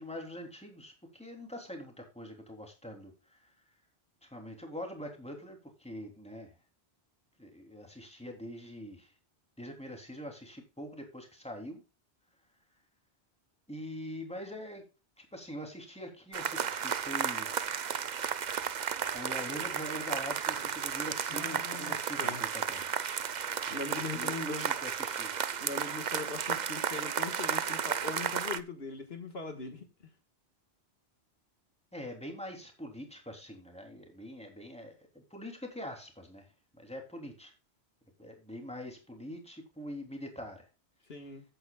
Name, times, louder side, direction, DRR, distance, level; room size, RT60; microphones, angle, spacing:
voice 1, 0.0-3.5 4.2-6.5 7.4-9.1 9.6-11.8 13.7-14.8 15.2-17.5 19.0-23.3 23.7-25.3 31.9-37.5 38.2-40.7, equal, 5° left, 3.1 m, -44 dB
sound 1, 16.3-28.6, right 7 dB, 50° right, 0.7 m, -33 dB
voice 2, 21.3-22.4 23.7-24.7 25.6-29.9 41.1-41.4, left 3 dB, 70° left, 1.9 m, -40 dB
14.5 x 9.1 x 2.3 m
omnidirectional pair, 1.1 m